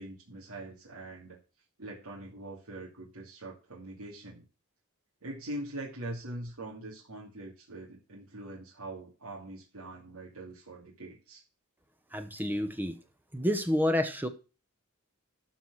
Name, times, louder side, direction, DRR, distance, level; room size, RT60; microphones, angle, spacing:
voice 1, 0.0-1.4 1.8-4.4 5.2-11.4, right 1 dB, 80° right, -4 dB, 2.7 m, -43 dB
voice 2, 12.1-12.9 13.3-14.3, left 1 dB, 10° right, 8 dB, 0.9 m, -29 dB
13.0 x 4.8 x 6.2 m, 0.33 s
head